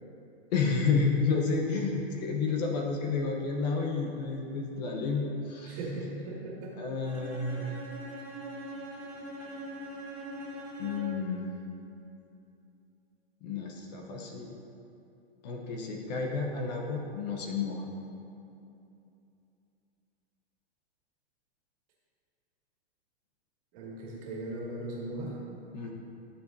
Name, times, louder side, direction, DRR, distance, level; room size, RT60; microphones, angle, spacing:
voice 1, 0.5-5.8 6.8-7.8 10.8-11.5 13.4-14.5 15.4-17.9 25.7-25.9, left 4 dB, 40° left, 1 dB, 0.9 m, -31 dB
voice 2, 5.6-6.7 23.7-25.3, right 2 dB, 35° right, -5 dB, 2.2 m, -38 dB
Bowed string instrument, 7.0-11.3, right 1 dB, 5° right, 2.0 m, -42 dB
13.5 x 7.2 x 2.7 m, 2.7 s
hypercardioid pair, 160°, 32 cm